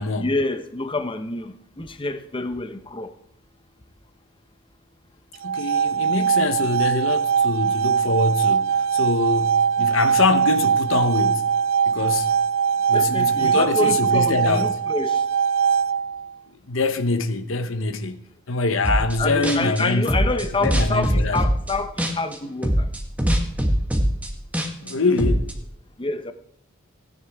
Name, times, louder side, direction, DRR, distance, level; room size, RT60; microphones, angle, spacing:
voice 1, 0.2-3.1 12.9-15.2 19.2-22.9 26.0-26.3, left 2 dB, 25° left, 0.8 m, -27 dB
sound 1, 5.3-16.3, right 7 dB, 65° right, 0.4 m, -21 dB
voice 2, 5.4-11.5 11.9-12.3 12.9-14.7 16.7-21.4 24.8-25.5, left 3 dB, 70° left, 1.0 m, -24 dB
sound 2, 18.8-19.2 19.4-22.4 22.6-25.5, equal, 5° right, 1.3 m, -22 dB
16.0 x 10.0 x 3.6 m
head